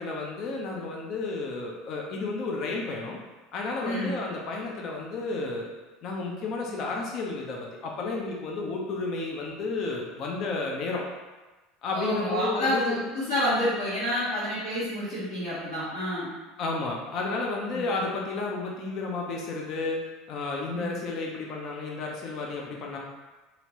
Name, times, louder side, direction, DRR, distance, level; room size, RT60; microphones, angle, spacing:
voice 1, 0.0-3.2 3.5-5.7 6.0-11.0 11.8-13.0 16.6-20.0 20.3-23.0, left 3 dB, 50° left, -1 dB, 0.5 m, -32 dB
voice 2, 3.8-4.2 11.9-16.3 17.7-17.9 20.7-20.9, equal, 65° left, -13 dB, 1.2 m, -29 dB
2.8 x 2.5 x 3.0 m, 1.2 s
figure-of-eight pair, 70°, 0 cm